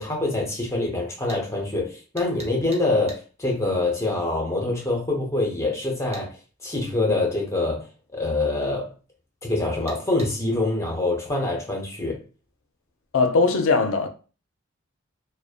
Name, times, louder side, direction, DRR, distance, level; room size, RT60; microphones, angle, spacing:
voice 1, 0.0-6.3 6.6-7.9 8.1-8.9 9.4-12.2, left 2 dB, 15° left, 0.6 m, -25 dB
sound 1, 1.3-1.4 2.2-3.2 6.1-6.3 9.9-10.3, right 2 dB, 30° right, 0.6 m, -41 dB
voice 2, 13.1-14.1, left 4 dB, 65° left, 0.4 m, -20 dB
2.5 x 2.1 x 2.4 m
head